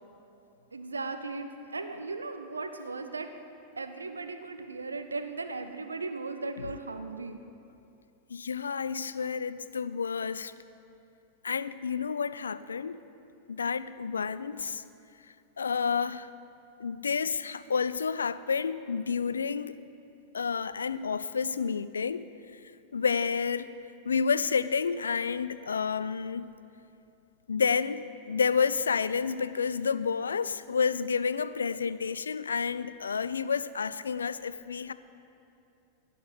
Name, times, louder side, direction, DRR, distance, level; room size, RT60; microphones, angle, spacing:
voice 1, 0.7-3.3 3.8-7.4, right 3 dB, 75° right, 8 dB, 0.8 m, -37 dB
voice 2, 8.3-10.5 11.4-13.0 13.5-14.8 15.6-16.3 16.8-19.8 20.3-22.6 22.9-23.8 24.0-26.5 27.5-34.9, left 6 dB, 70° left, 15 dB, 0.3 m, -30 dB
15.5 x 5.9 x 6.9 m, 2.7 s
figure-of-eight pair, 90°, 0 cm